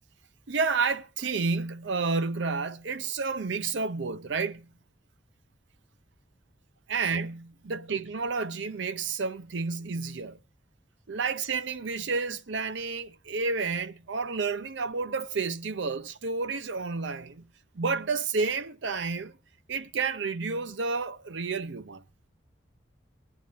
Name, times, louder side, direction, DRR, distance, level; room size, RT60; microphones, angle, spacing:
voice 1, 0.5-4.7 6.9-10.4 11.1-17.5 17.7-19.4 19.7-22.0, right 4 dB, 70° right, 0.6 m, -30 dB
20.0 x 9.7 x 3.0 m
head